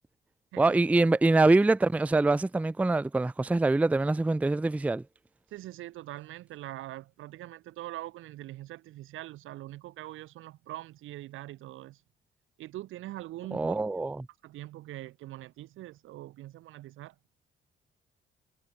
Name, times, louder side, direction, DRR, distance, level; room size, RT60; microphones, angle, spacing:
voice 1, 0.6-5.0 13.5-14.3, right 2 dB, 5° right, 0.4 m, -24 dB
voice 2, 5.5-12.0 12.6-13.8 14.4-17.1, right 16 dB, 90° right, 2.5 m, -43 dB
cardioid pair, 90°, 20 cm